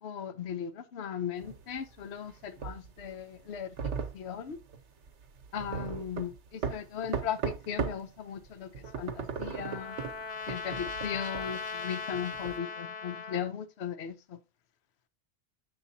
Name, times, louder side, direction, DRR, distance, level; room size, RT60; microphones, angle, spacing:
voice 1, 0.0-4.6 5.5-6.3 6.7-10.0 10.5-14.4, left 8 dB, 70° left, 1.0 m, -37 dB
sound 1, 1.4-8.1 8.4-12.6, right 6 dB, 85° right, 1.1 m, -37 dB
Trumpet, 8.8-13.5, left 5 dB, 45° left, 0.8 m, -39 dB
7.7 x 7.0 x 2.7 m
omnidirectional pair, 1.1 m